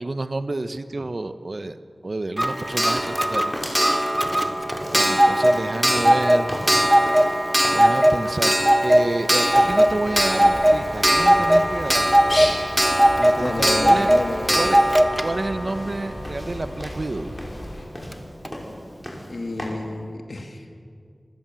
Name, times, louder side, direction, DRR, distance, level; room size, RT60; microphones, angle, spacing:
voice 1, 0.0-1.8 2.0-4.1 4.9-6.8 7.7-8.5 8.8-12.1 13.2-14.1 14.5-14.8 15.2-17.4, right 2 dB, 50° right, 11 dB, 1.0 m, -29 dB
Clock, 2.4-17.0 18.1-18.2 18.4-18.5, equal, 10° right, 1.2 m, -19 dB
sound 1, 2.8-19.7, equal, 15° left, 5.4 m, -40 dB
Bird, 9.5-17.9, left 1 dB, 55° left, 5.5 m, -35 dB
voice 2, 13.4-14.9 19.3-20.8, left 2 dB, 70° left, 4 dB, 2.5 m, -30 dB
27.5 x 15.0 x 7.7 m, 2.2 s
wide cardioid pair, 55°, 0 cm